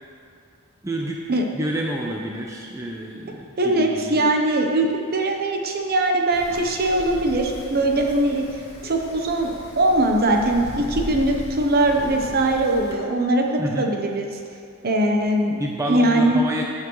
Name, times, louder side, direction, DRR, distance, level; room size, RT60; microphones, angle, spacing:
voice 1, 0.8-1.2 1.5-4.2 13.6-13.9 15.6-16.6, right 1 dB, 15° right, -1 dB, 0.6 m, -28 dB
voice 2, 3.6-8.5 8.8-14.3 14.8-15.6 15.9-16.4, right 1 dB, 45° right, 2 dB, 0.8 m, -21 dB
Wind, 6.3-12.9, left 1 dB, 65° left, 1.9 m, -37 dB
15.0 x 5.8 x 3.1 m, 2.4 s
head